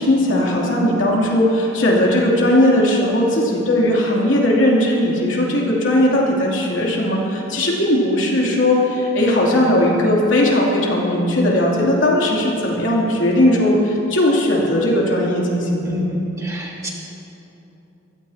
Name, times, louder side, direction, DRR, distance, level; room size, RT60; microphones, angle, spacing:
voice 1, 0.0-16.1, left 1 dB, 65° left, -3 dB, 3.1 m, -18 dB
voice 2, 15.9-16.9, left 1 dB, 15° right, -3 dB, 1.9 m, -26 dB
24.0 x 16.0 x 2.9 m, 2.9 s
head